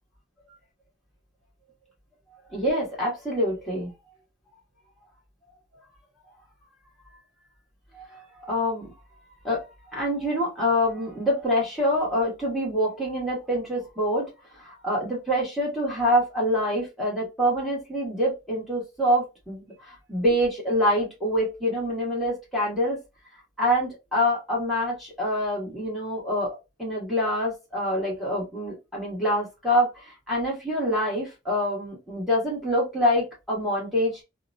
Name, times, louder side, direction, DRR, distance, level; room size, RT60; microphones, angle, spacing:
voice 1, 2.5-3.9 7.9-8.2 8.5-8.9 9.4-14.3 14.6-19.6 20.1-23.0 23.6-34.1, equal, ahead, 1.3 m, -26 dB
2.8 x 2.2 x 2.5 m
head